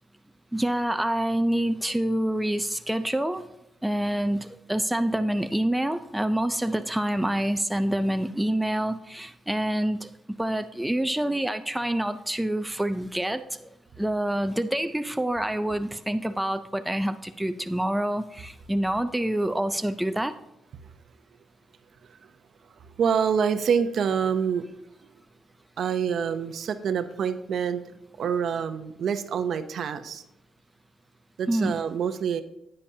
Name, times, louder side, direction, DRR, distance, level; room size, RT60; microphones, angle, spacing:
voice 1, 0.5-3.4 3.8-13.7 14.0-20.3 31.5-31.8, right 1 dB, 5° right, 9 dB, 0.4 m, -27 dB
voice 2, 22.7-24.7 25.8-27.8 28.2-30.2 31.4-32.4, right 7 dB, 60° right, 10 dB, 0.6 m, -26 dB
9.7 x 8.7 x 2.8 m, 0.86 s
cardioid pair, 90°, 0 cm